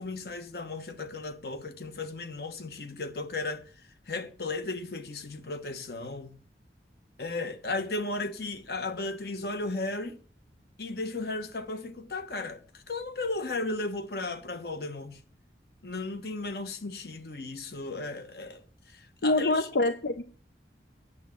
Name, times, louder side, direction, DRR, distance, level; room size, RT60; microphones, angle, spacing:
voice 1, 0.0-3.6 4.1-6.4 7.2-10.2 10.8-15.2 15.8-19.7, left 3 dB, 60° left, 1.1 m, -35 dB
voice 2, 19.2-20.3, left 2 dB, 80° left, 0.6 m, -26 dB
9.1 x 7.2 x 6.3 m
head